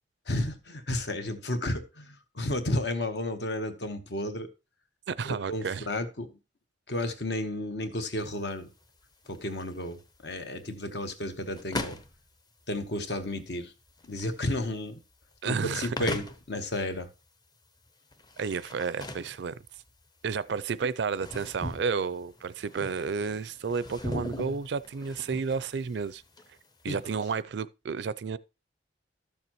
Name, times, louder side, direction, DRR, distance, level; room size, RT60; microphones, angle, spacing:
voice 1, 0.3-4.5 5.2-6.4 6.9-8.7 9.3-12.0 12.7-13.7 14.0-15.0 15.4-17.1 26.9-27.0, left 1 dB, 65° left, 1.2 m, -32 dB
voice 2, 5.1-5.9 15.4-16.0 18.4-19.6 20.2-26.2 26.8-28.4, right 5 dB, 70° right, 0.4 m, -31 dB
sound 1, 8.2-27.4, left 1 dB, 25° left, 0.7 m, -41 dB
12.5 x 6.8 x 3.0 m
head